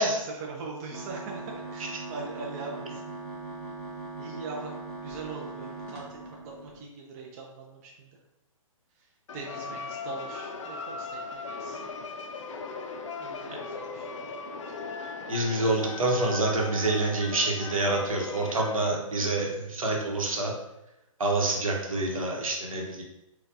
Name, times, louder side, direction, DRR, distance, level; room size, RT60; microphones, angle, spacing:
voice 1, 0.0-3.0 4.2-4.7 5.0-6.2 6.4-8.1 9.3-11.8 13.2-14.4 21.9-22.3, right 4 dB, 30° right, -1 dB, 0.4 m, -41 dB
sound 1, 0.9-6.8, right 3 dB, 5° left, 1.0 m, -40 dB
sound 2, 9.3-19.0, left 4 dB, 60° left, 0.4 m, -38 dB
voice 2, 15.3-20.5 21.2-23.0, right 2 dB, 70° right, -1 dB, 0.9 m, -27 dB
4.3 x 2.3 x 2.6 m, 0.92 s
figure-of-eight pair, 125°, 18 cm